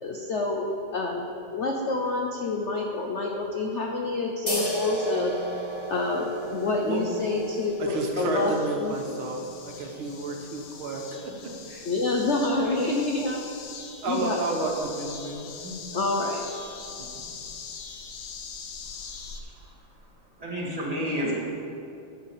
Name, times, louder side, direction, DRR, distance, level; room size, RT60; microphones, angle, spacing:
voice 1, 0.0-5.3 5.9-8.5 8.8-8.9 11.8-13.4 14.0-14.7 15.9-16.5, left 3 dB, 65° left, 1 dB, 0.7 m, -27 dB
sound 1, 4.5-19.4, left 6 dB, 90° left, 1.8 m, -43 dB
sound 2, 4.5-11.6, right 1 dB, 15° left, 1.0 m, -35 dB
voice 2, 7.8-11.9 14.0-15.7 16.9-17.3, right 3 dB, 80° right, 1 dB, 2.0 m, -32 dB
voice 3, 19.4-19.7 20.4-21.3, equal, 20° right, -5 dB, 2.3 m, -31 dB
11.5 x 5.8 x 7.1 m, 2.6 s
omnidirectional pair, 2.3 m